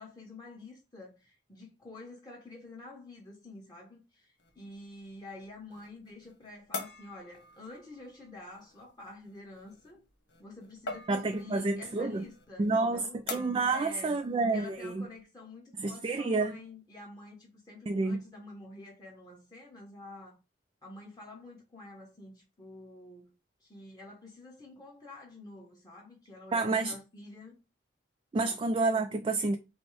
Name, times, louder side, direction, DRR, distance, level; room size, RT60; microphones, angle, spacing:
voice 1, 0.0-10.0 10.4-13.2 13.7-14.2 14.5-20.4 20.8-23.3 23.6-27.6 28.3-28.7, left 2 dB, 20° left, 1.1 m, -48 dB
sound 1, 4.4-15.2, left 3 dB, 75° left, 1.4 m, -46 dB
voice 2, 11.1-12.3 12.6-15.1 15.8-16.6 17.9-18.2 26.5-26.9 28.3-29.6, right 3 dB, 30° right, 0.3 m, -29 dB
5.2 x 2.1 x 4.8 m
head